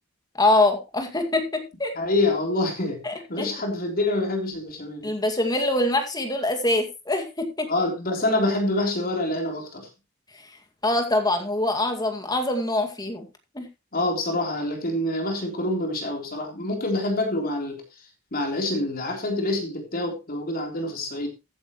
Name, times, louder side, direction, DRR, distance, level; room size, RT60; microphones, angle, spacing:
voice 1, 0.3-1.9 3.0-3.5 5.0-7.7 10.8-13.3 13.5-13.7, left 2 dB, 20° left, 5 dB, 2.2 m, -24 dB
voice 2, 2.0-3.0 3.3-5.1 7.7-9.9 13.9-17.8 18.3-21.3, left 2 dB, 50° left, 2 dB, 3.5 m, -26 dB
14.5 x 9.1 x 3.1 m, 0.26 s
head